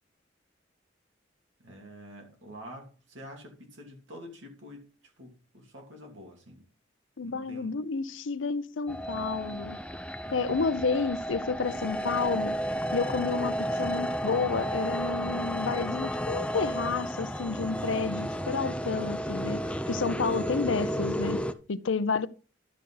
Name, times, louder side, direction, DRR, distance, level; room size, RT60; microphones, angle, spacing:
voice 1, 1.6-6.7 7.2-7.8 10.2-10.6, equal, 80° right, 2.8 m, -47 dB
voice 2, 7.2-9.8 10.3-12.6 12.9-19.6 19.9-21.4 21.7-22.3, left 4 dB, 85° left, 0.6 m, -30 dB
sound 1, 8.9-21.5, equal, 5° left, 0.5 m, -32 dB
11.5 x 6.7 x 3.9 m
head